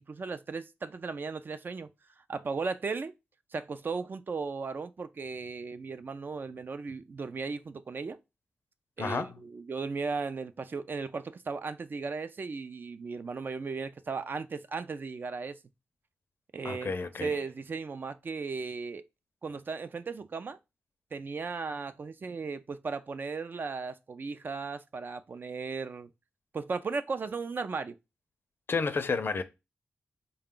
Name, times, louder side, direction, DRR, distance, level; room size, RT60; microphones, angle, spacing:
voice 1, 0.0-1.9 2.3-3.1 3.5-8.2 9.0-15.6 16.5-16.9 17.2-19.0 19.4-20.6 21.1-26.1 26.5-28.0, right 4 dB, 50° right, 0.4 m, -36 dB
voice 2, 9.0-9.3 16.6-17.4 28.7-29.4, left 4 dB, 55° left, 0.5 m, -31 dB
3.9 x 2.2 x 3.7 m
cardioid pair, 80°, 4 cm